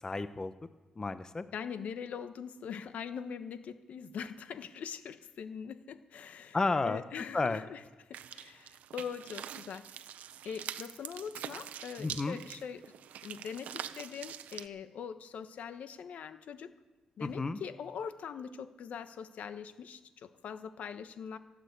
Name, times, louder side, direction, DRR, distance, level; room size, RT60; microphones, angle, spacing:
voice 1, 0.0-0.5 1.0-1.4 6.5-7.0 7.3-7.6 12.0-12.4 17.2-17.6, left 3 dB, 25° left, 11 dB, 0.8 m, -32 dB
voice 2, 1.5-6.6 6.8-7.8 8.1-9.9 10.4-12.8 13.2-16.7 17.2-21.4, left 7 dB, 70° left, 10 dB, 1.1 m, -42 dB
sound 1, 8.1-14.7, right 10 dB, 85° right, 0.8 m, -44 dB
17.0 x 8.7 x 8.1 m, 1.2 s
cardioid pair, 95°, 3 cm